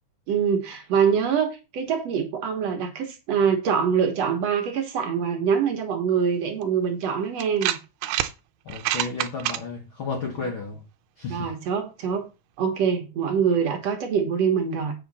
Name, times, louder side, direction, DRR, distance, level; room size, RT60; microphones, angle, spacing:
voice 1, 0.3-7.8 11.3-12.3 12.6-14.9, right 7 dB, 60° right, 2.1 m, -24 dB
sound 1, 6.6-6.7 7.4-8.3 8.7-9.6, right 13 dB, 85° right, 2.3 m, -26 dB
voice 2, 8.6-10.8 11.2-11.5, left 4 dB, 65° left, 1.3 m, -32 dB
7.9 x 6.3 x 4.1 m
omnidirectional pair, 3.7 m